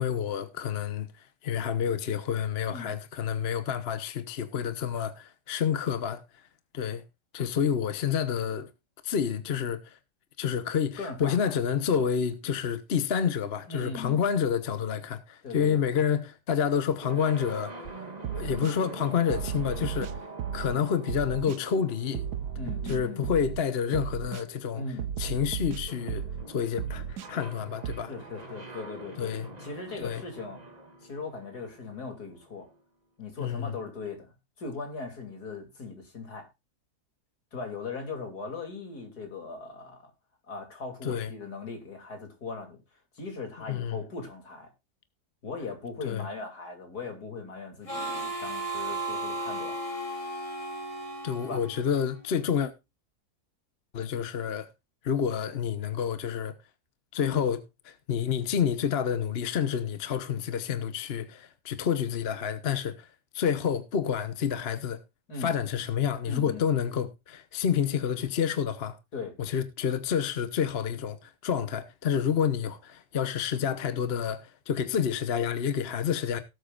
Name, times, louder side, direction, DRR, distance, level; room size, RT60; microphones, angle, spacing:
voice 1, 0.0-6.2 6.7-7.0 7.3-8.7 9.0-10.0 10.4-17.7 18.3-20.1 20.5-22.3 22.9-24.8 25.2-28.1 29.2-29.5 30.0-30.2 33.4-33.8 41.0-41.3 43.7-44.0 46.0-46.3 51.2-52.7 53.9-54.7 55.0-56.5 57.1-63.1 63.3-65.0 65.4-69.0 69.4-76.4, left 8 dB, 45° left, 1.1 m, -29 dB
voice 2, 11.0-11.6 11.9-12.0 13.7-14.3 15.4-15.8 22.6-23.2 24.7-25.1 28.1-29.3 29.6-30.6 31.0-32.7 33.2-34.3 34.6-36.5 37.5-40.1 40.5-42.8 43.1-44.7 45.4-49.8 51.4-51.6 65.3-65.5 66.2-66.7 69.1-69.3, left 4 dB, 75° left, 3.4 m, -39 dB
sound 1, 17.0-32.8, right 2 dB, 25° right, 2.0 m, -45 dB
sound 2, 17.8-17.9 18.2-18.7 19.3-20.8 21.1-21.6 22.1-23.6 23.9-24.4 25.0-26.5 26.8-27.3 27.8-28.0, right 8 dB, 80° right, 1.3 m, -34 dB
Harmonica, 47.9-52.3, right 2 dB, 20° left, 2.2 m, -35 dB
18.0 x 8.1 x 2.5 m
omnidirectional pair, 1.7 m